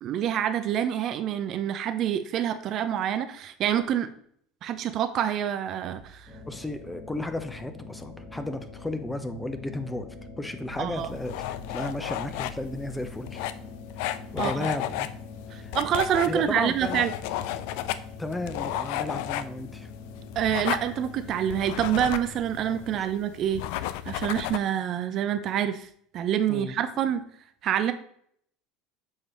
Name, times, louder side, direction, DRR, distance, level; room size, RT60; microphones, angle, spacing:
voice 1, 0.0-4.1 4.6-6.3 10.8-11.1 14.4-14.7 15.5-17.1 20.4-23.6 24.1-27.2 27.6-27.9, right 10 dB, 50° right, 10 dB, 0.5 m, -27 dB
sound 1, 6.0-13.1, left 2 dB, 5° right, 1.2 m, -50 dB
sound 2, 6.3-23.0, left 4 dB, 35° left, 2.4 m, -44 dB
voice 2, 6.4-11.4 11.7-13.5 14.3-15.1 15.5-15.7 16.3-17.0 18.2-19.9 22.9-23.1 26.5-26.7, left 1 dB, 10° left, 9 dB, 0.8 m, -34 dB
sound 3, 11.0-24.6, left 13 dB, 70° left, 0.4 m, -34 dB
7.4 x 4.7 x 3.1 m, 0.65 s
hypercardioid pair, 80°, 0 cm